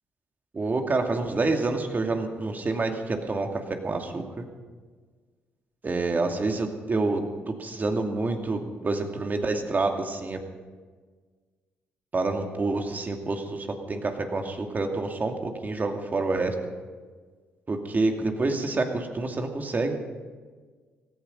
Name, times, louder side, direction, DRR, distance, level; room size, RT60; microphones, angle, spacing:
voice 1, 0.5-4.4 5.8-10.4 12.1-16.5 17.7-19.9, right 3 dB, 40° right, 4 dB, 2.4 m, -28 dB
17.5 x 14.5 x 5.3 m, 1.5 s
supercardioid pair, 55°, 5 cm